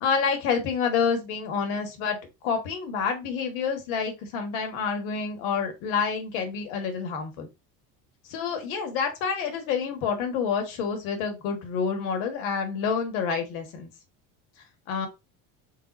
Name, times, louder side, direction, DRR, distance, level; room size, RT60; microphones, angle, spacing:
voice 1, 0.0-2.2 2.4-7.5 8.3-13.9 14.9-15.1, left 6 dB, 85° left, 4 dB, 1.6 m, -28 dB
3.8 x 2.5 x 4.1 m, 0.23 s
cardioid pair, 140°, 38 cm